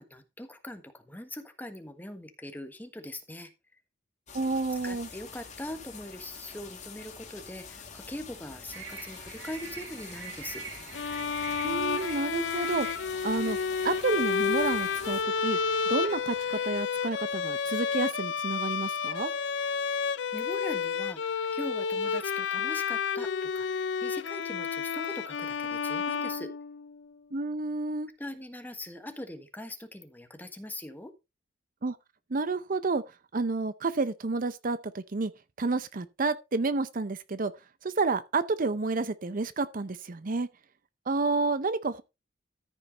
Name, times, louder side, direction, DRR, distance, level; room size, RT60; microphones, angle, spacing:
voice 1, 0.0-3.5 4.8-10.6 20.3-26.5 28.2-31.1, left 1 dB, 10° left, 1.3 m, -41 dB
sound 1, 4.3-15.2, left 5 dB, 40° left, 2.3 m, -46 dB
voice 2, 4.3-5.1 11.6-12.9 13.2-13.6 13.8-15.6 15.9-19.3 27.3-28.1 31.8-32.0 32.3-33.0 33.3-35.3 35.6-37.5 37.8-40.5 41.1-42.0, right 3 dB, 45° right, 0.6 m, -30 dB
sound 2, 8.7-16.8, right 4 dB, 85° right, 4.6 m, -46 dB
Bowed string instrument, 10.9-27.0, left 6 dB, 65° left, 0.5 m, -31 dB
14.0 x 5.6 x 4.0 m
head